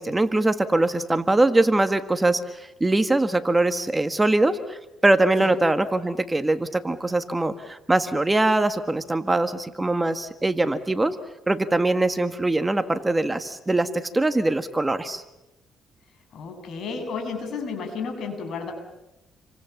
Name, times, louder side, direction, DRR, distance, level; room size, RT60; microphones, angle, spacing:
voice 1, 0.0-4.8 5.0-11.1 11.5-15.2, right 2 dB, 15° right, 9 dB, 1.6 m, -22 dB
voice 2, 16.3-18.7, left 5 dB, 70° left, 5 dB, 8.0 m, -32 dB
29.5 x 24.5 x 7.2 m, 0.98 s
cardioid pair, 90°, 0 cm